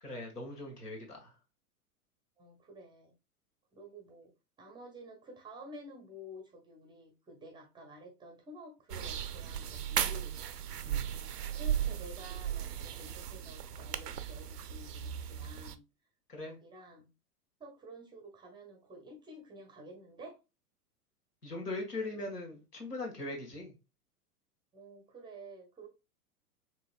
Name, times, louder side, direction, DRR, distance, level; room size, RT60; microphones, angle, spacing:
voice 1, 0.0-1.3 10.8-11.1 16.3-16.6 21.4-23.7, left 2 dB, 85° left, 1.6 m, -40 dB
voice 2, 2.4-3.1 3.7-4.3 4.6-10.4 10.9-11.3 11.6-15.8 16.5-17.1 17.6-20.4 22.2-22.3 24.7-25.9, equal, 10° right, 0.5 m, -51 dB
sound 1, 8.9-15.7, right 9 dB, 85° right, 0.5 m, -36 dB
4.6 x 3.0 x 2.3 m
figure-of-eight pair, 100°, 46 cm